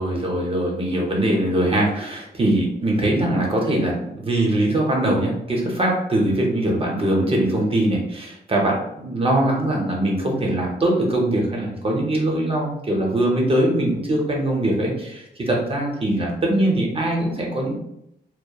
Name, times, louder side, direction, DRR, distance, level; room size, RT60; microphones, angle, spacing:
voice 1, 0.0-17.8, right 1 dB, 35° right, -1 dB, 0.5 m, -22 dB
2.7 x 2.0 x 2.3 m, 0.80 s
wide cardioid pair, 125°, 18 cm